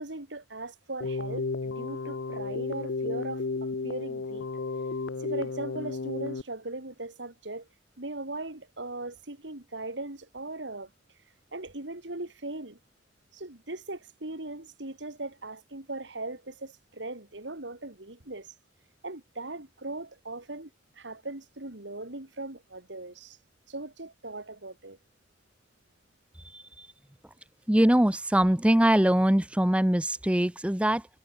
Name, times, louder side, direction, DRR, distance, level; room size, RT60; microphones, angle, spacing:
voice 1, 0.0-4.5 5.2-7.7 8.0-10.9 11.5-12.8 13.3-18.5 19.0-23.4 23.7-25.0, right 2 dB, 85° right, 2.8 m, -39 dB
Keyboard (musical), 1.0-6.4, left 3 dB, 90° left, 0.7 m, -33 dB
voice 2, 26.4-26.9 27.7-31.1, right 1 dB, 5° right, 0.5 m, -23 dB
head